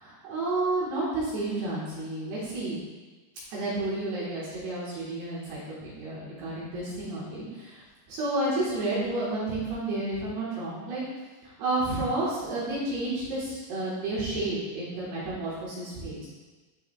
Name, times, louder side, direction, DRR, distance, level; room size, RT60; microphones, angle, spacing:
voice 1, 0.3-2.8 3.5-11.0 11.4-16.3, right 2 dB, 65° right, -8 dB, 2.9 m, -31 dB
12.5 x 4.8 x 2.3 m, 1.2 s
omnidirectional pair, 5.8 m